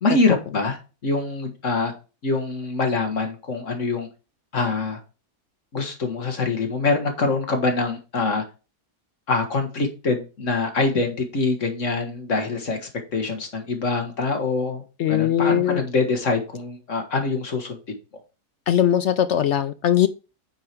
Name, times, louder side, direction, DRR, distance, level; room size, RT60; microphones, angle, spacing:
voice 1, 0.0-1.9 2.2-4.1 4.5-5.0 5.7-8.4 9.3-17.8, left 3 dB, 50° left, 4 dB, 1.9 m, -24 dB
voice 2, 15.0-15.8 18.7-20.1, left 10 dB, 70° left, 12 dB, 0.6 m, -20 dB
8.8 x 4.9 x 4.5 m, 0.32 s
omnidirectional pair, 1.7 m